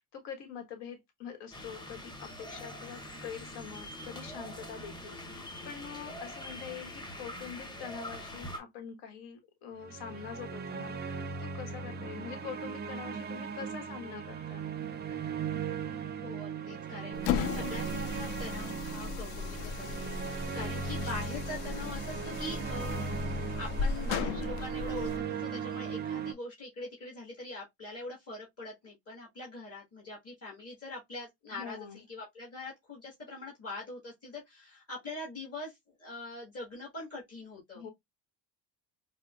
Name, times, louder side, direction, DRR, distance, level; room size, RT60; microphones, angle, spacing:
voice 1, 0.1-14.6 20.5-20.9 31.5-32.0 37.7-37.9, left 7 dB, 80° left, 1.3 m, -45 dB
sound 1, 1.5-8.6, left 1 dB, 10° left, 0.7 m, -44 dB
sound 2, 9.8-26.3, right 6 dB, 25° right, 0.4 m, -38 dB
voice 2, 15.8-23.1 23.5-37.8, left 2 dB, 35° left, 1.5 m, -43 dB
sound 3, 17.1-25.2, left 5 dB, 60° left, 0.5 m, -36 dB
4.8 x 2.1 x 2.3 m
cardioid pair, 115°, 42 cm